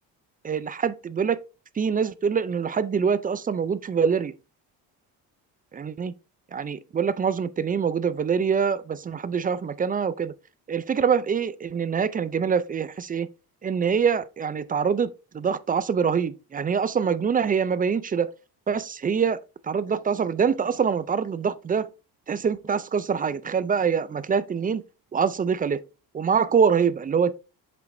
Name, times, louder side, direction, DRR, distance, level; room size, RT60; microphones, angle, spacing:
voice 1, 0.4-1.4 1.8-4.3 5.7-6.1 6.5-10.3 10.7-13.3 13.6-18.3 18.7-21.9 22.3-24.8 25.1-25.8 26.1-27.3, right 6 dB, 20° right, 0.4 m, -24 dB
7.5 x 5.2 x 2.6 m
cardioid pair, 100°, 40 cm